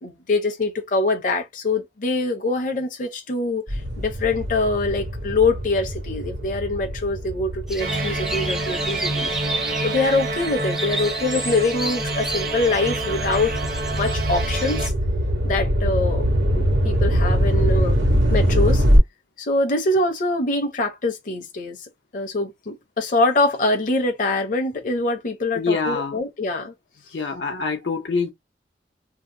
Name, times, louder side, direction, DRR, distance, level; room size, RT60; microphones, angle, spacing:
voice 1, 0.0-13.5 13.9-14.9 15.4-18.0 18.3-18.8 19.4-21.8 22.1-26.7, left 2 dB, 45° left, 0.6 m, -24 dB
sound 1, 3.7-10.4 11.0-19.0, equal, 90° right, 1.0 m, -23 dB
sound 2, 7.7-14.9, right 1 dB, 5° right, 0.3 m, -32 dB
sound 3, 7.8-14.9, right 2 dB, 50° right, 0.6 m, -28 dB
voice 2, 25.6-26.2 27.1-28.3, left 4 dB, 90° left, 0.7 m, -25 dB
2.7 x 2.0 x 3.6 m
head